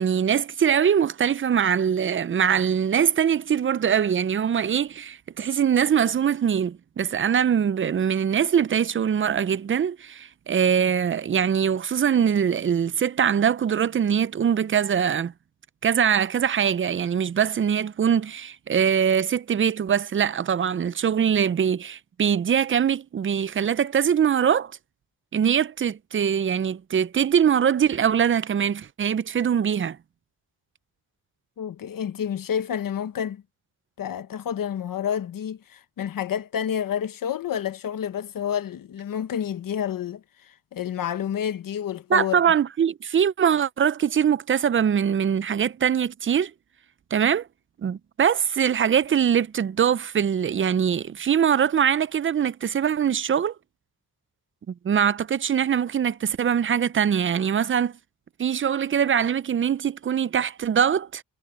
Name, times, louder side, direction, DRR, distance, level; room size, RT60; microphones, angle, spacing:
voice 1, 0.0-15.3 15.8-24.7 25.3-30.0 42.1-46.5 47.1-47.5 47.8-53.5 54.7-58.0 58.4-61.2, right 8 dB, 40° right, 0.5 m, -22 dB
voice 2, 31.6-33.4 34.0-42.4, left 9 dB, 85° left, 1.3 m, -29 dB
cardioid pair, 85°, 33 cm